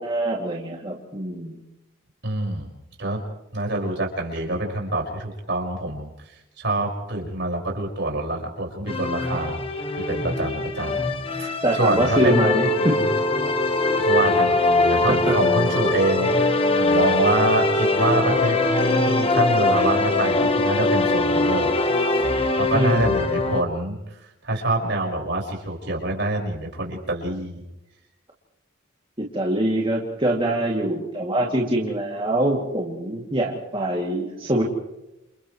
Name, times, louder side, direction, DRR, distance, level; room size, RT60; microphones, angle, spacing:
voice 1, 0.0-1.6 11.6-13.0 15.1-15.4 22.7-23.1 29.2-34.6, right 1 dB, 25° right, -2 dB, 2.6 m, -24 dB
voice 2, 2.2-2.7 3.0-3.2 3.5-6.1 6.6-9.6 10.1-11.1 11.4-12.5 14.0-21.7 22.6-24.0 24.4-27.6, right 2 dB, 60° right, 1 dB, 5.6 m, -26 dB
sound 1, 8.9-23.6, left 2 dB, 30° left, 1.5 m, -22 dB
30.0 x 29.0 x 3.2 m, 0.91 s
head